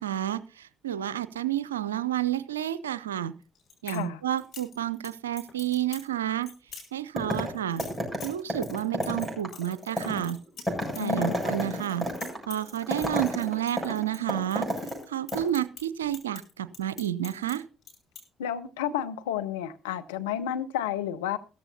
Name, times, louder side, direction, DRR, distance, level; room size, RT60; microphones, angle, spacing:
voice 1, 0.0-3.3 3.8-6.5 6.9-7.8 8.2-10.4 10.9-12.1 12.5-14.7 15.1-17.6, right 11 dB, 85° right, 0.5 m, -30 dB
sound 1, 3.4-4.0 4.4-5.1 5.4-6.1 6.4-6.9 7.3-11.7 11.9-12.7 13.0-14.5 14.8-17.6 17.8-18.2, left 6 dB, 55° left, 4.9 m, -45 dB
voice 2, 3.9-4.2 11.0-11.4 18.4-21.4, left 10 dB, 75° left, 0.7 m, -31 dB
sound 2, 7.2-7.5 7.8-15.0 15.3-15.4, equal, ahead, 7.6 m, -31 dB
16.5 x 14.0 x 2.8 m
figure-of-eight pair, 45°, 0 cm